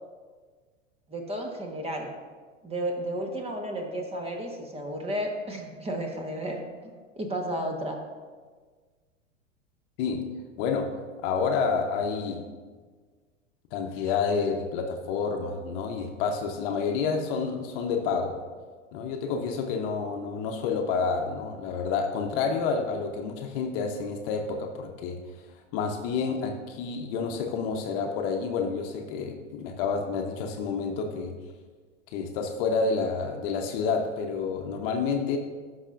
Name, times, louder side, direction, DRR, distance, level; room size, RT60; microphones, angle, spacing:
voice 1, 1.1-2.1 2.6-6.6 7.2-8.0, right 1 dB, 15° right, 2 dB, 1.4 m, -32 dB
voice 2, 10.6-10.9 11.2-12.4 13.7-18.3 18.9-25.2 25.7-31.3 32.1-35.4, left 5 dB, 45° left, 3 dB, 1.0 m, -29 dB
15.5 x 5.8 x 2.6 m, 1.5 s
hypercardioid pair, 100°, 38 cm